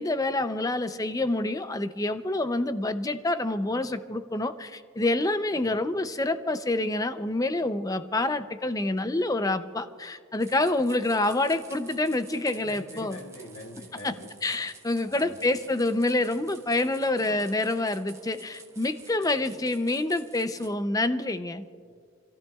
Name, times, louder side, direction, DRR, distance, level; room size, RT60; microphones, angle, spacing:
voice 1, 0.0-13.2 14.0-14.1 14.4-21.7, left 2 dB, 15° left, 10 dB, 0.5 m, -27 dB
sound 1, 10.4-20.7, right 4 dB, 15° right, 0.9 m, -50 dB
voice 2, 12.6-14.3 15.0-15.4 21.8-21.9, left 1 dB, 70° left, 1 dB, 1.9 m, -44 dB
30.0 x 14.5 x 2.4 m, 2.1 s
head